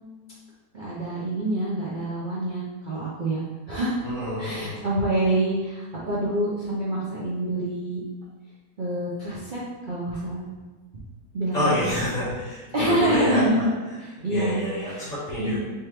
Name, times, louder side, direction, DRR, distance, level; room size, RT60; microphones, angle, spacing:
voice 1, 0.7-4.0 4.4-8.0 8.8-10.4 10.9-11.0 11.3-11.8 12.7-13.7 14.2-14.6 14.9-15.1 15.4-15.6, right 1 dB, 65° right, -8 dB, 0.5 m, -26 dB
voice 2, 4.0-4.8 10.1-10.2 11.5-13.5 14.3-15.6, left 1 dB, 50° left, -10 dB, 1.5 m, -28 dB
3.5 x 3.4 x 2.9 m, 1.3 s
omnidirectional pair, 1.8 m